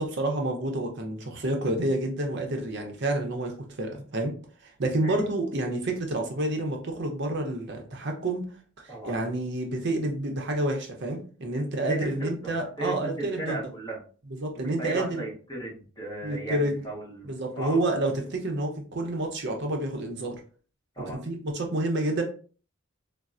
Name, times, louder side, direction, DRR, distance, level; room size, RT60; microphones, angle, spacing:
voice 1, 0.0-4.3 4.6-8.4 8.8-13.6 14.3-15.2 16.2-16.8 17.2-20.4 21.2-22.2, right 1 dB, 60° right, 3 dB, 0.6 m, -29 dB
voice 2, 11.5-14.0 14.8-17.3 17.5-17.8 21.0-21.2, right 2 dB, 20° left, -4 dB, 1.1 m, -36 dB
4.0 x 2.0 x 2.4 m, 0.39 s
head